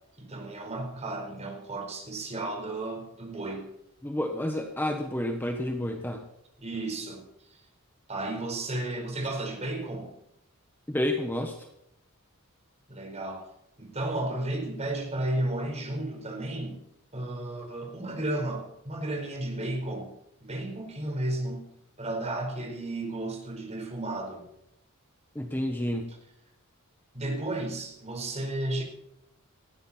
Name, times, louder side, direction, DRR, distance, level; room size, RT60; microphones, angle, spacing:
voice 1, 0.2-3.7 6.6-7.2 8.1-10.1 12.9-13.5 13.8-16.8 17.1-20.1 20.4-21.6 22.0-24.5 27.1-28.8, right 1 dB, 30° right, 3 dB, 4.7 m, -33 dB
voice 2, 4.0-6.2 10.9-11.7 25.3-26.1, left 1 dB, 10° left, 4 dB, 1.3 m, -30 dB
19.0 x 15.0 x 4.4 m, 0.81 s
head